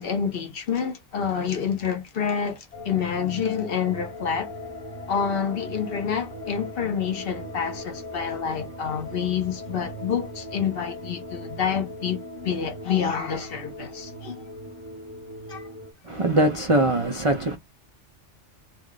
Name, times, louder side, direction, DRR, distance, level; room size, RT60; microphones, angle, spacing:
voice 1, 0.0-4.5 5.1-14.4 15.5-15.6, left 7 dB, 55° left, 0.8 m, -28 dB
sound 1, 2.7-15.9, left 1 dB, 30° left, 0.9 m, -39 dB
voice 2, 16.0-17.6, right 1 dB, 50° right, 0.4 m, -22 dB
2.4 x 2.2 x 3.7 m
omnidirectional pair, 1.3 m